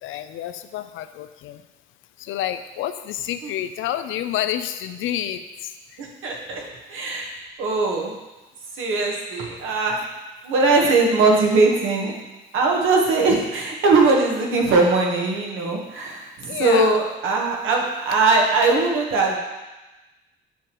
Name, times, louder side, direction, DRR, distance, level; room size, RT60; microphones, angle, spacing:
voice 1, 0.0-1.6 2.2-5.4 16.5-17.0, left 11 dB, 85° left, 11 dB, 0.4 m, -29 dB
voice 2, 6.0-7.3 7.6-8.1 8.8-10.0 10.4-12.1 12.5-19.4, right 3 dB, 85° right, 0 dB, 1.3 m, -20 dB
7.1 x 6.2 x 3.0 m, 1.1 s
cardioid pair, 90°, 20 cm